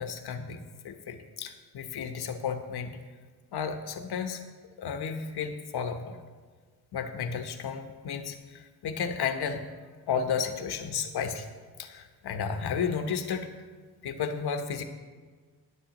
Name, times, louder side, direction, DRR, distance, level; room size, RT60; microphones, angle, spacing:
voice 1, 0.0-3.0 3.5-4.4 4.8-6.2 6.9-9.7 10.1-11.5 11.8-13.5 14.0-14.8, left 6 dB, 60° left, 7 dB, 1.1 m, -33 dB
19.0 x 7.0 x 3.0 m, 1.5 s
cardioid pair, 80°, 43 cm